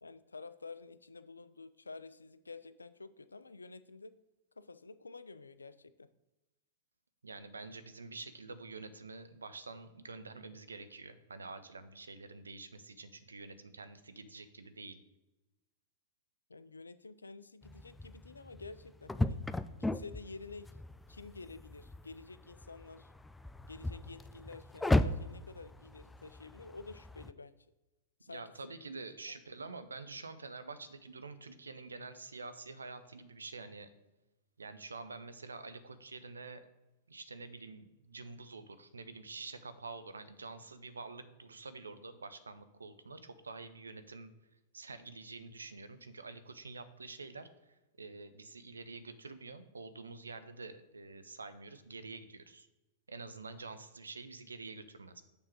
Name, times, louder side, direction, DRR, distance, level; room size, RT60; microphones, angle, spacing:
voice 1, 0.0-4.1 4.6-6.1 16.5-19.4 19.8-20.7 21.1-23.1 23.7-27.5 28.2-28.4 29.3-29.4, left 4 dB, 85° left, 15 dB, 0.4 m, -50 dB
voice 2, 7.2-15.0 28.3-33.9 34.6-36.7 37.1-44.3 44.7-52.7 53.1-55.2, right 3 dB, 85° right, 11 dB, 0.6 m, -47 dB
sound 1, 17.6-27.3, left 1 dB, 10° left, 0.3 m, -37 dB
6.8 x 3.7 x 6.0 m, 1.0 s
figure-of-eight pair, 100°, 0 cm